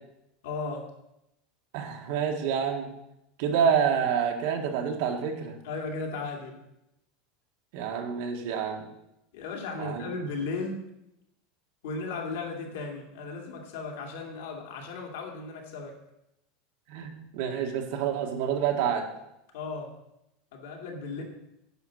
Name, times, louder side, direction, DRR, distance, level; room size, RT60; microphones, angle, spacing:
voice 1, 0.4-0.9 5.6-6.6 9.3-10.8 11.8-16.0 19.5-19.9 20.5-21.2, left 3 dB, 85° left, 1 dB, 2.5 m, -35 dB
voice 2, 1.7-2.9 3.4-5.6 7.7-8.8 9.8-10.0 16.9-19.1, right 7 dB, 55° right, 3 dB, 1.6 m, -28 dB
9.9 x 5.3 x 6.3 m, 0.85 s
supercardioid pair, 175°, 0 cm